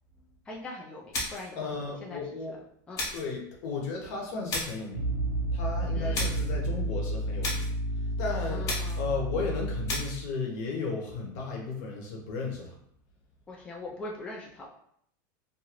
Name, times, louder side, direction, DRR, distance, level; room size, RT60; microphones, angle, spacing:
voice 1, 0.5-1.6 1.8-2.2 2.9-3.0 5.9-6.4 8.5-9.0 13.5-14.7, left 2 dB, 10° left, -2 dB, 0.3 m, -41 dB
sound 1, 1.1-1.6 3.0-3.3 4.5-4.9 6.1-6.5 7.4-7.8 8.7-9.1 9.9-10.2, left 2 dB, 30° left, 0.8 m, -34 dB
voice 2, 1.5-2.6 3.1-5.1 5.5-7.6 8.0-8.7 9.0-12.7, left 4 dB, 60° left, 0 dB, 0.9 m, -35 dB
sound 2, 4.9-10.3, right 1 dB, 80° right, 0.6 m, -31 dB
2.6 x 2.5 x 3.0 m, 0.68 s
supercardioid pair, 150°, 10 cm